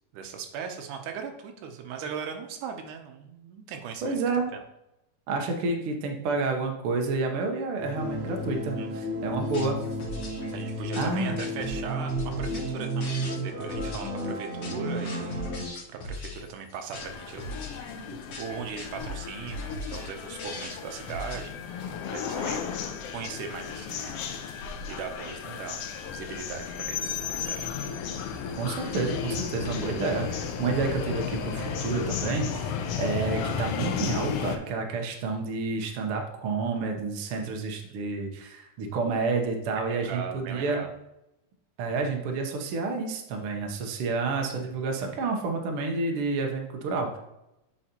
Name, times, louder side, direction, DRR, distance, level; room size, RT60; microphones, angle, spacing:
voice 1, 0.1-4.2 4.5-4.6 8.8-8.9 10.5-22.7 23.1-24.1 24.9-25.8 26.1-27.7 40.0-40.9, right 6 dB, 90° right, 5 dB, 2.4 m, -39 dB
voice 2, 4.0-4.5 5.3-9.8 11.0-11.4 28.6-40.8 41.8-47.2, right 3 dB, 65° right, 3 dB, 1.5 m, -29 dB
sound 1, 7.8-15.7, equal, 40° right, 1.3 m, -32 dB
sound 2, 9.4-21.5, left 1 dB, 55° left, 2.0 m, -40 dB
sound 3, 16.9-34.6, left 7 dB, 80° left, 1.3 m, -34 dB
8.8 x 5.5 x 2.9 m, 0.89 s
omnidirectional pair, 3.5 m